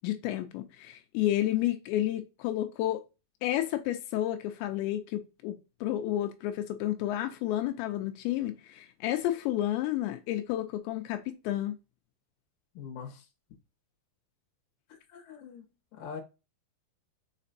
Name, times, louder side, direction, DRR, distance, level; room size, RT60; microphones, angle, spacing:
voice 1, 0.0-3.0 3.4-11.8, left 13 dB, 85° left, 3.0 m, -31 dB
voice 2, 12.7-13.3 15.1-15.7 15.9-16.2, left 6 dB, 60° left, 2.6 m, -42 dB
6.7 x 5.3 x 2.7 m
omnidirectional pair, 5.1 m